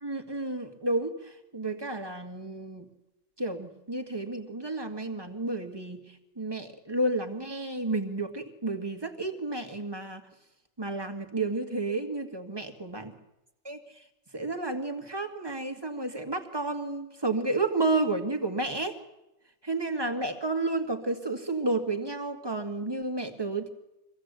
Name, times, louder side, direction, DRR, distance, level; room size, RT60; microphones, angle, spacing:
voice 1, 0.0-2.9 3.4-6.1 6.4-10.2 10.8-13.1 13.6-13.8 14.3-19.0 19.6-23.7, right 2 dB, 20° right, 5 dB, 1.9 m, -31 dB
24.5 x 16.5 x 8.3 m, 0.93 s
omnidirectional pair, 1.1 m